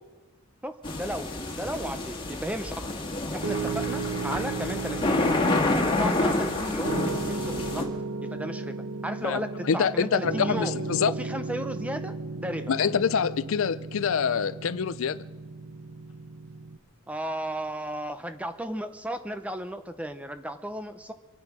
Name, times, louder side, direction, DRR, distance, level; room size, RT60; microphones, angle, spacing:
voice 1, 0.6-2.9 3.3-5.4 5.8-7.9 8.2-10.8 11.1-12.7 17.1-21.1, right 1 dB, 5° right, 0.8 m, -34 dB
sound 1, 0.8-7.8, left 2 dB, 20° left, 2.0 m, -28 dB
Piano, 3.4-16.8, right 4 dB, 80° right, 1.3 m, -35 dB
voice 2, 9.7-11.1 12.7-15.2, left 6 dB, 65° left, 0.4 m, -25 dB
25.5 x 9.1 x 6.2 m
head